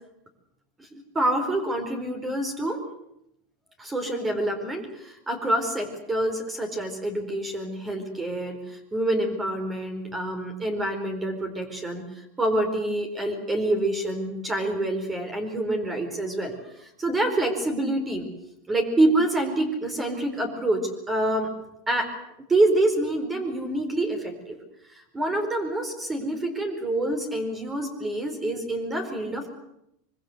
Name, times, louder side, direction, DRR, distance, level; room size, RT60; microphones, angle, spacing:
voice 1, 0.8-2.8 3.8-18.3 18.7-21.5 21.9-22.1 22.5-24.6 24.9-29.5, right 1 dB, 15° right, 6 dB, 4.5 m, -27 dB
24.5 x 23.5 x 8.1 m, 0.79 s
supercardioid pair, 130°, 0 cm